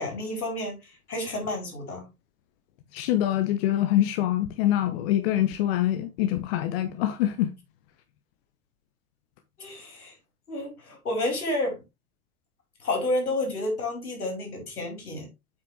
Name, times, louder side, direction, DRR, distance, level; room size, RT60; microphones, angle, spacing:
voice 1, 0.0-2.1 9.6-10.1 10.5-11.8 12.8-15.3, left 1 dB, 75° left, 4.5 m, -30 dB
voice 2, 2.9-7.5, left 12 dB, 40° left, 1.0 m, -25 dB
8.4 x 5.9 x 3.3 m
figure-of-eight pair, 95°, 45 cm